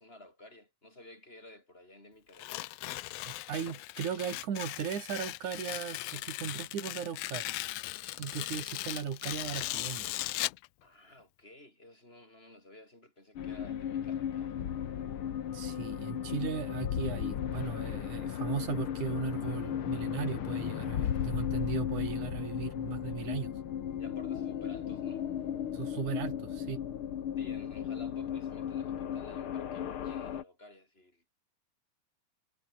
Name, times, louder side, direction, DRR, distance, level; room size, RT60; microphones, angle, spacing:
voice 1, 0.0-2.6 10.8-14.5 24.0-25.3 27.4-31.2, left 1 dB, 15° left, 8.0 m, -53 dB
Tearing, 2.3-10.7, left 18 dB, 85° left, 1.4 m, -38 dB
voice 2, 3.3-7.5 8.2-10.1 15.5-23.5 25.7-26.8, right 7 dB, 75° right, 4.2 m, -37 dB
sound 1, 13.4-30.4, left 9 dB, 50° left, 1.9 m, -35 dB
omnidirectional pair, 3.5 m